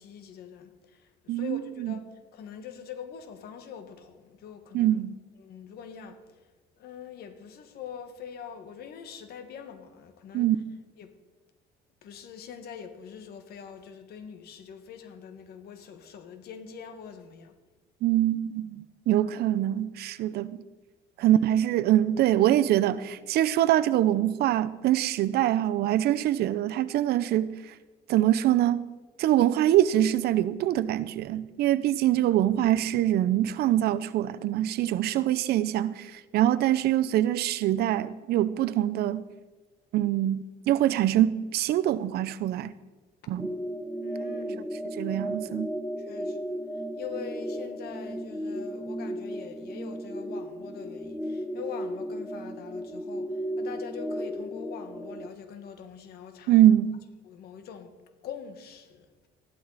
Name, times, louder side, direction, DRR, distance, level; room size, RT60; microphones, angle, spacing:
voice 1, 0.0-5.0 5.4-6.2 6.8-10.5 11.0-11.1 12.0-17.5 21.2-21.5 44.0-44.7 46.0-46.6 47.0-56.6 57.2-57.9 58.2-59.1, left 7 dB, 70° left, 1.7 m, -43 dB
voice 2, 1.3-1.9 4.7-5.1 10.3-10.6 18.0-20.6 21.2-27.5 28.1-28.8 29.2-39.2 39.9-42.7 43.3-43.5 45.0-45.7 56.5-57.0, right 12 dB, 70° right, 0.7 m, -24 dB
sound 1, 43.4-55.3, equal, ahead, 0.8 m, -35 dB
14.5 x 12.0 x 4.1 m
cardioid pair, 110°, 17 cm